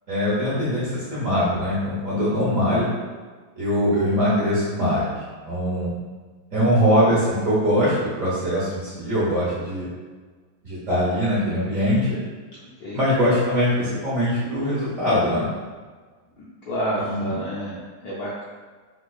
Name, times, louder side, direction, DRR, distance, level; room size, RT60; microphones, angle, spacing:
voice 1, 0.1-2.9 3.5-5.1 5.5-5.9 6.5-9.9 10.6-12.2 12.9-15.5 17.0-17.3, equal, 50° right, -9 dB, 1.1 m, -22 dB
voice 2, 16.4-18.4, right 1 dB, 70° left, -8 dB, 0.9 m, -29 dB
3.6 x 2.8 x 2.3 m, 1.4 s
omnidirectional pair, 2.2 m